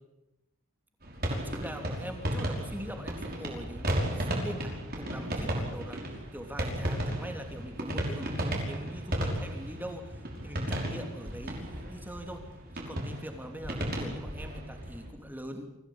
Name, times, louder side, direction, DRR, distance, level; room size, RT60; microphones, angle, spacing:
sound 1, 1.0-15.1, right 1 dB, 45° right, 5.7 m, -34 dB
voice 1, 1.3-12.5 12.7-15.7, equal, 10° right, 4 dB, 3.1 m, -42 dB
25.0 x 17.0 x 8.8 m, 0.94 s
head